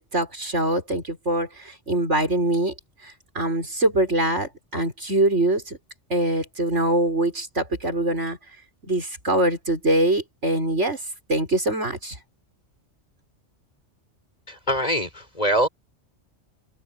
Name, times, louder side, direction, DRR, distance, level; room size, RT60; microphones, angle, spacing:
voice 1, 0.0-2.7 3.4-5.8 6.1-8.4 8.8-11.0 11.3-12.2, right 1 dB, 70° right, 7.1 m, -23 dB
voice 2, 14.5-15.7, equal, 35° left, 5.5 m, -23 dB
omnidirectional pair, 1.3 m